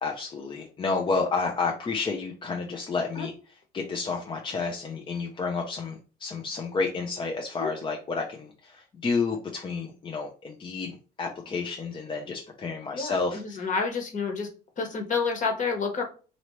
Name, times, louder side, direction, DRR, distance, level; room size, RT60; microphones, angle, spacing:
voice 1, 0.0-13.7, left 4 dB, 30° left, 1 dB, 0.6 m, -31 dB
voice 2, 12.9-14.5 14.8-16.0, left 4 dB, 50° left, 3 dB, 1.4 m, -29 dB
4.0 x 3.0 x 3.1 m, 0.36 s
cardioid pair, 110°, 17 cm